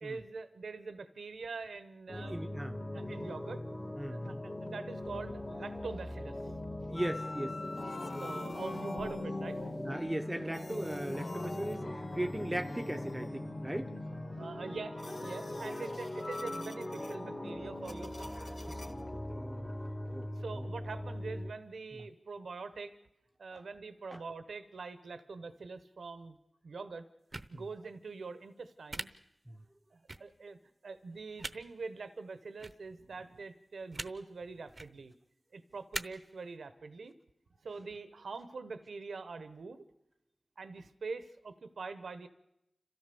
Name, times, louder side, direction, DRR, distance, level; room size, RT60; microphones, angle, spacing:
voice 1, 0.0-2.4 2.9-3.6 4.0-6.4 8.2-9.6 14.3-18.4 20.4-23.0 23.4-26.4 26.6-27.0 27.5-29.1 29.9-30.6 30.8-35.1 35.5-37.1 37.6-39.9 40.6-42.3, right 4 dB, 85° right, 12 dB, 0.9 m, -44 dB
sound 1, 2.1-21.5, left 1 dB, 35° left, 2.4 m, -41 dB
voice 2, 2.1-3.2 4.0-4.4 6.9-7.6 9.8-13.9 18.3-18.8 19.3-19.8 20.0-20.3 20.5-20.7 23.5-23.6 24.1-24.2 27.5-27.6 29.5-29.6, right 1 dB, 15° right, 6 dB, 0.9 m, -39 dB
sound 2, 7.0-19.0, left 2 dB, 60° left, 1.7 m, -44 dB
sound 3, 27.3-27.5 28.9-29.0 30.1-30.2 31.4-31.5 32.6-32.7 33.9-34.1 34.7-34.9 35.9-36.0, right 2 dB, 45° right, 0.8 m, -39 dB
29.5 x 13.5 x 6.9 m, 0.85 s
cardioid pair, 45°, 0 cm